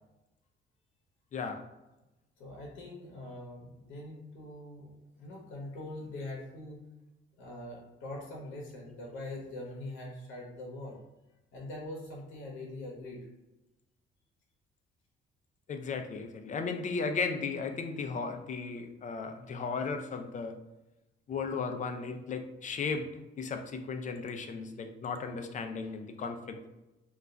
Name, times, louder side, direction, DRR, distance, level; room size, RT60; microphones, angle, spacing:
voice 1, 1.3-1.6 15.7-20.6 21.3-23.1 23.4-26.7, left 4 dB, 40° left, 6 dB, 0.4 m, -35 dB
voice 2, 2.4-4.9 5.2-6.8 7.4-11.0 11.5-13.3, left 1 dB, 80° left, -1 dB, 0.8 m, -43 dB
2.3 x 2.2 x 3.8 m, 0.99 s
cardioid pair, 90°, 20 cm